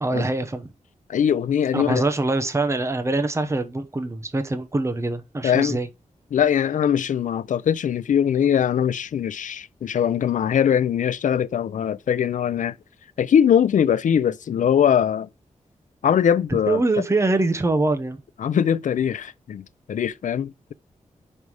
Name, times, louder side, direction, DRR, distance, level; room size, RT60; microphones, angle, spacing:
voice 1, 0.0-0.7 1.7-5.9 16.7-18.2, right 2 dB, 20° right, 0.9 m, -24 dB
voice 2, 1.1-2.0 5.4-5.8 6.3-12.7 13.2-15.3 16.0-16.8 18.4-20.7, left 8 dB, 85° left, 0.4 m, -21 dB
5.5 x 4.7 x 4.8 m
wide cardioid pair, 120°, 13 cm